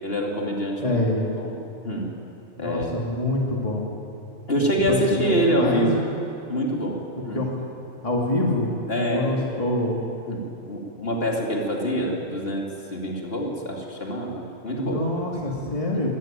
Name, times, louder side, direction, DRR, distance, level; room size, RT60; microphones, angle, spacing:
voice 1, 0.0-1.0 1.4-1.5 1.8-2.1 2.6-2.9 4.5-6.0 6.5-7.5 8.9-9.3 10.3-15.1 15.4-15.6 15.9-16.1, equal, 45° left, -1 dB, 3.0 m, -26 dB
voice 2, 0.8-1.3 2.6-3.9 4.5-5.9 7.3-7.5 8.0-8.7 9.1-10.0 14.8-16.1, left 2 dB, 25° left, -2 dB, 2.4 m, -26 dB
22.0 x 16.5 x 9.0 m, 2.7 s
omnidirectional pair, 1.4 m